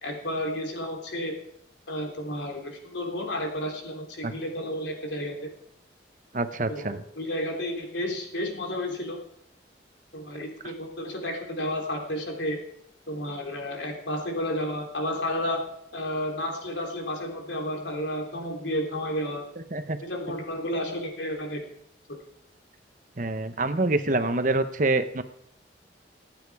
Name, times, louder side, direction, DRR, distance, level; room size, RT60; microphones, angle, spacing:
voice 1, 0.0-1.3 1.9-5.5 6.7-9.2 10.1-12.6 13.1-15.7 15.9-19.5 20.0-21.6, left 1 dB, 80° left, 2 dB, 3.4 m, -31 dB
voice 2, 6.3-7.0 19.7-20.0 23.2-25.2, right 2 dB, 45° right, 10 dB, 0.9 m, -26 dB
25.5 x 9.0 x 4.8 m, 0.73 s
head